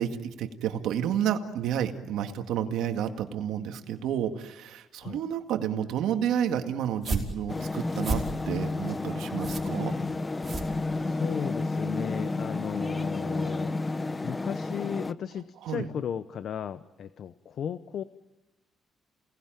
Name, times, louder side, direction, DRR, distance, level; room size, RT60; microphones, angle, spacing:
voice 1, 0.0-9.9 15.6-15.9, right 9 dB, 85° right, 6 dB, 1.9 m, -30 dB
sound 1, 6.8-11.3, right 2 dB, 30° right, 5.2 m, -35 dB
sound 2, 7.5-15.1, left 3 dB, 20° left, 0.8 m, -31 dB
voice 2, 10.9-13.9 14.2-18.0, left 8 dB, 65° left, 13 dB, 0.8 m, -35 dB
28.5 x 19.0 x 9.1 m, 1.1 s
cardioid pair, 90°, 0 cm